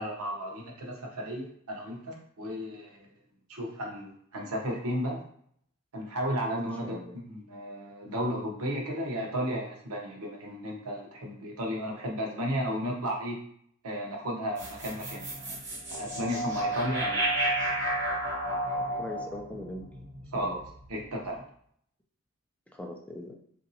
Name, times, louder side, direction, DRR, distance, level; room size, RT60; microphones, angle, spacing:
voice 1, 0.0-3.1 3.5-5.2 5.9-13.4 13.8-15.6 15.9-17.3 20.3-20.6 20.9-21.4, equal, 85° right, 0 dB, 0.8 m, -34 dB
voice 2, 6.8-7.2 19.0-19.9 20.3-20.6 22.7-23.3, left 1 dB, 5° left, 1 dB, 0.3 m, -40 dB
sound 1, 14.6-20.9, right 1 dB, 55° right, 1.2 m, -32 dB
2.9 x 2.6 x 2.6 m, 0.66 s
head